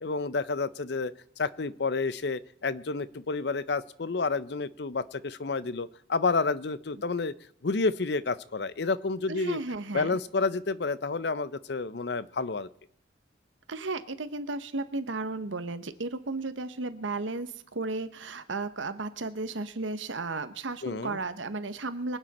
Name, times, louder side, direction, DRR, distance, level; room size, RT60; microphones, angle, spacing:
voice 1, 0.0-7.3 7.6-9.6 9.9-12.7 20.8-21.2, left 4 dB, 60° left, 17 dB, 0.6 m, -30 dB
voice 2, 9.3-10.2 13.7-22.2, right 3 dB, 85° right, 11 dB, 1.1 m, -34 dB
24.0 x 9.1 x 4.2 m, 0.70 s
head